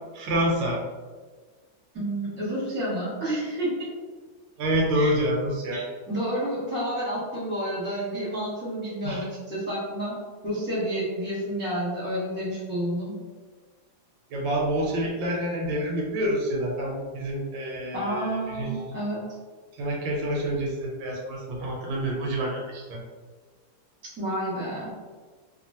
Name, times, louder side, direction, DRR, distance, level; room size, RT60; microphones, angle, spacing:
voice 1, 0.1-0.8 4.6-5.8 9.0-9.3 14.3-18.9 19.7-23.0, right 1 dB, 75° right, -1 dB, 1.2 m, -27 dB
voice 2, 1.9-3.9 4.9-5.2 6.1-10.1 10.4-13.1 17.9-19.2 24.2-24.9, right 1 dB, 10° right, -8 dB, 0.7 m, -30 dB
3.0 x 2.4 x 2.7 m, 1.4 s
omnidirectional pair, 2.1 m